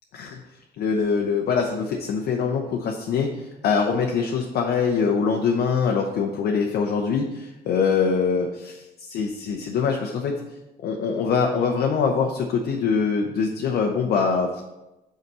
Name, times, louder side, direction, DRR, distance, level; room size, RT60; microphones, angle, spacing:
voice 1, 0.8-10.4 10.8-14.6, left 5 dB, 65° left, 1 dB, 0.8 m, -23 dB
5.4 x 5.0 x 5.4 m, 0.99 s
cardioid pair, 110°, 17 cm